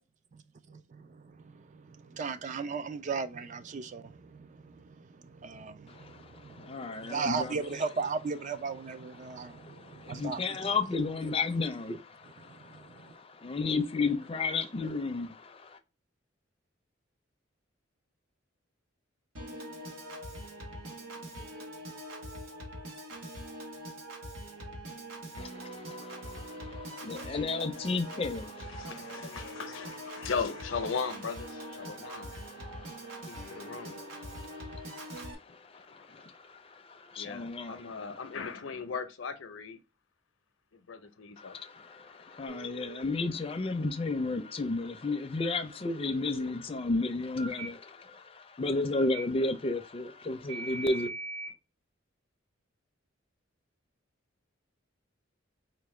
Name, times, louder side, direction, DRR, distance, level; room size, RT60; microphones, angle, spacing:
voice 1, 0.7-10.8 11.2-11.3 12.2-13.2, right 5 dB, 40° right, 0.3 m, -37 dB
voice 2, 6.6-7.5 9.6-15.7 25.4-28.9 30.1-30.3 32.5-32.9 33.3-33.7 34.3-34.6 36.1-36.2 36.5-36.6 37.1-38.0 41.4-51.1, left 3 dB, 30° left, 0.4 m, -33 dB
Piano / Organ, 19.4-35.4, right 1 dB, 85° right, 1.0 m, -43 dB
voice 3, 28.6-32.6 33.2-34.0 35.9-36.2 37.2-39.8 40.9-41.6 42.2-42.7, left 5 dB, 80° left, 0.6 m, -38 dB
Telephone, 42.5-43.0 46.0-46.5 47.4-47.7 48.9-49.2 50.5-51.5, right 3 dB, 65° right, 2.3 m, -41 dB
4.6 x 2.1 x 3.1 m
head